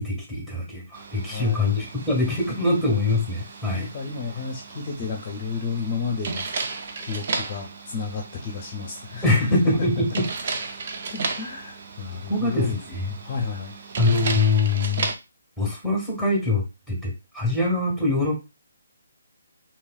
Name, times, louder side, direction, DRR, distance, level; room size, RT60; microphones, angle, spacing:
voice 1, 0.0-3.9 9.2-10.3 12.3-13.0 14.0-15.1 15.6-18.3, left 2 dB, 10° right, -3 dB, 1.6 m, -23 dB
sound 1, 0.9-15.2, right 4 dB, 45° right, 0.5 m, -35 dB
voice 2, 1.2-1.7 3.7-6.5 7.0-9.2 11.1-13.7, left 5 dB, 35° left, 1 dB, 0.6 m, -32 dB
3.0 x 2.9 x 2.3 m, 0.26 s
figure-of-eight pair, 140°, 0 cm